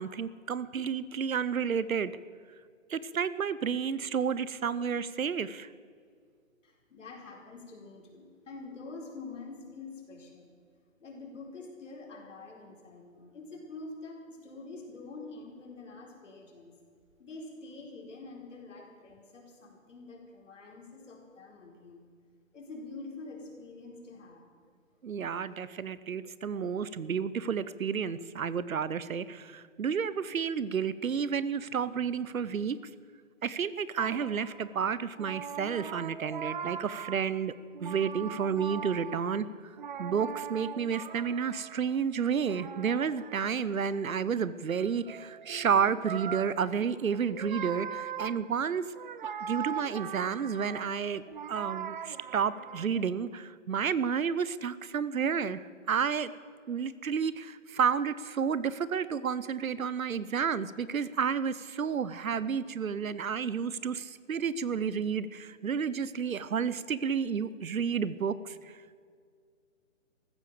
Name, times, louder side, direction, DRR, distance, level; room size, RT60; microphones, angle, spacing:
voice 1, 0.0-2.1 2.9-5.7 25.0-32.8 33.4-37.5 37.8-39.5 40.0-48.9 49.4-51.2 51.5-56.3 56.7-68.8, right 6 dB, 85° right, 16 dB, 0.9 m, -31 dB
voice 2, 6.6-10.5 11.0-16.7 17.2-22.0 22.5-24.5, left 3 dB, 65° left, 1 dB, 4.4 m, -46 dB
sound 1, 34.0-34.8 35.2-37.5 37.7-42.0 42.4-53.0, right 8 dB, 40° right, 0.6 m, -41 dB
15.0 x 13.0 x 6.9 m, 2.1 s
hypercardioid pair, 150°, 40 cm